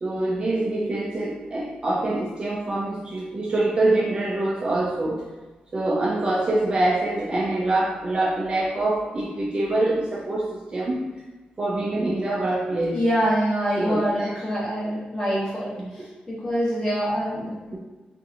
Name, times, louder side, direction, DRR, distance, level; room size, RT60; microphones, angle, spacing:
voice 1, 0.0-5.2 5.7-11.1 11.6-13.0 13.8-14.3 15.8-15.9 17.7-17.8, right 2 dB, 30° right, -3 dB, 0.3 m, -25 dB
voice 2, 12.9-17.5, equal, 20° left, -8 dB, 0.9 m, -25 dB
2.7 x 2.5 x 2.4 m, 1.2 s
wide cardioid pair, 155°, 3 cm